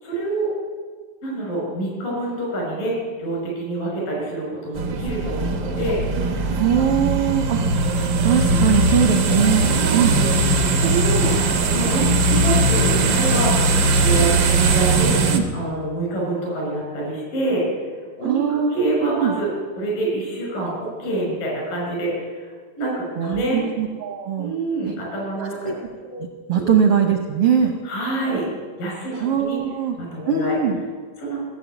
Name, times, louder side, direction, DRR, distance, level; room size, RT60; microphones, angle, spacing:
voice 1, 0.0-0.5 1.2-6.0 9.6-10.2 10.7-11.3 11.7-14.3 14.6-15.2 15.5-17.7 18.2-19.5 19.8-22.4 22.8-23.6 24.4-25.7 26.5-26.7 27.9-28.5 28.8-29.6 30.0-30.6 31.2-31.4, right 2 dB, 80° left, -2 dB, 7.3 m, -26 dB
sound 1, 4.7-15.4, right 2 dB, 90° right, 1.0 m, -19 dB
voice 2, 6.6-7.9 8.2-10.2 15.3-15.4 18.2-18.9 19.2-19.3 23.2-24.5 24.8-24.9 25.4-25.7 26.1-27.7 29.1-30.0 30.3-30.8, right 8 dB, 75° right, 4 dB, 1.3 m, -21 dB
16.5 x 7.5 x 9.4 m, 1.5 s
omnidirectional pair, 3.9 m